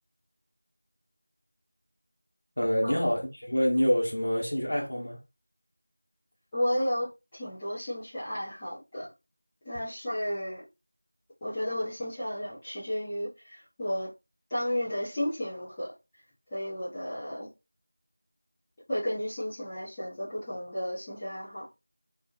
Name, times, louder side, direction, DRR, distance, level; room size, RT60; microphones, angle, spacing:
voice 1, 2.6-5.2, equal, 45° left, 0.9 m, -26 dB
voice 2, 6.5-7.1 7.3-9.1 9.6-10.6 11.4-14.1 14.5-15.9 16.5-17.5 18.9-21.7, equal, 5° left, 0.3 m, -33 dB
2.6 x 2.4 x 2.7 m
figure-of-eight pair, 180°, 0 cm